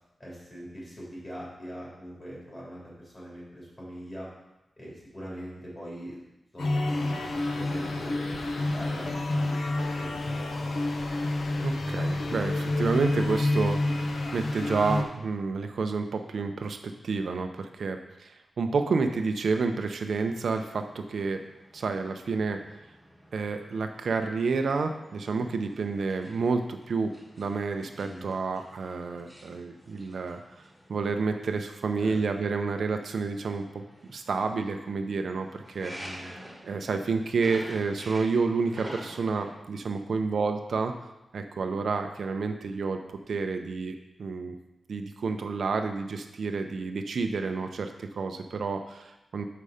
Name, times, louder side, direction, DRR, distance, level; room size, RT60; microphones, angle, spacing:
voice 1, 0.2-4.3 4.8-6.2 6.5-10.1 28.0-28.2 32.0-32.2 35.9-36.3, equal, 30° left, -6 dB, 2.8 m, -42 dB
sound 1, 6.6-15.0, left 2 dB, 75° left, 0.8 m, -29 dB
voice 2, 11.6-16.8 17.0-21.4 21.7-22.6 23.3-30.6 30.9-33.8 34.1-36.4 36.6-40.9 41.3-44.5 44.9-49.4, right 4 dB, 70° right, 6 dB, 0.5 m, -30 dB
sound 2, 20.7-39.6, equal, 5° left, 1.4 m, -49 dB
6.7 x 5.4 x 4.9 m, 0.94 s
wide cardioid pair, 170°, 0 cm